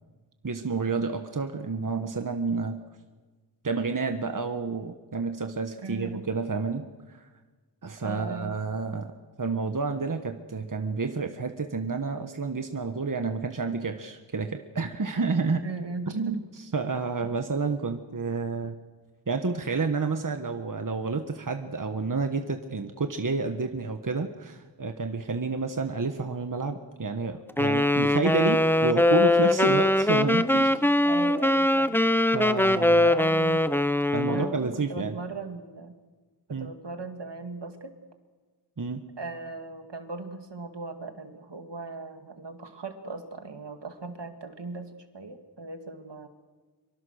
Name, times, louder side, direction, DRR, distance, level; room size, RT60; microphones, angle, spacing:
voice 1, 0.4-2.8 3.6-7.3 7.8-9.1 9.4-15.6 16.1-18.8 19.3-30.8 32.3-33.1 34.1-35.2 36.5-36.7 38.8-39.0, right 4 dB, 50° right, 6 dB, 1.4 m, -30 dB
voice 2, 5.8-6.2 8.0-8.6 15.6-16.3 30.8-32.0 32.9-33.6 34.2-36.0 36.5-37.9 39.2-46.3, right 3 dB, 75° right, 6 dB, 2.3 m, -38 dB
Wind instrument woodwind instrument, 27.6-34.5, left 1 dB, 5° left, 0.7 m, -22 dB
24.5 x 24.0 x 6.5 m, 1.3 s
wide cardioid pair, 65°, 42 cm